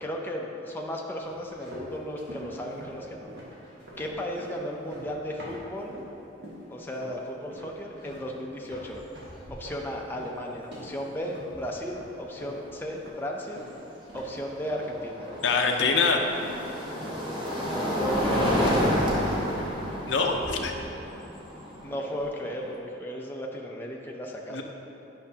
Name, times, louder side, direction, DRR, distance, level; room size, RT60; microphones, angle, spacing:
voice 1, 0.0-3.3 4.0-6.0 6.7-9.0 9.5-13.6 14.1-15.3 17.7-19.1 21.8-24.6, equal, 10° left, -1 dB, 0.5 m, -35 dB
sound 1, 1.3-6.1 6.4-7.2 7.5-13.8 14.1-14.9 15.2-16.0 16.3-18.1 18.5-18.8, equal, 65° right, 1.5 m, -45 dB
sound 2, 8.9-9.0 9.3-9.7 11.5-11.6 14.6-22.7, equal, 25° right, 1.1 m, -29 dB
voice 2, 15.4-16.2 20.1-20.7 24.5-24.6, left 4 dB, 70° left, 3 dB, 0.6 m, -24 dB
10.5 x 5.7 x 2.8 m, 2.9 s
head